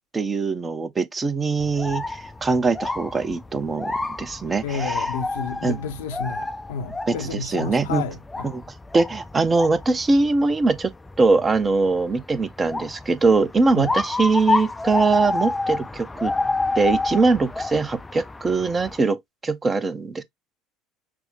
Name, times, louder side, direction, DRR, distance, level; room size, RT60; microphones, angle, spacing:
voice 1, 0.1-5.1 5.6-5.8 7.1-8.0 8.4-8.6 8.9-10.9 11.2-16.3 16.7-19.2 19.4-20.2, right 3 dB, 25° right, 0.7 m, -22 dB
sound 1, 1.6-19.0, left 3 dB, 15° left, 0.4 m, -29 dB
voice 2, 4.6-8.6 13.7-14.0, left 6 dB, 65° left, 0.6 m, -31 dB
6.1 x 2.1 x 3.4 m
figure-of-eight pair, 65°, 0 cm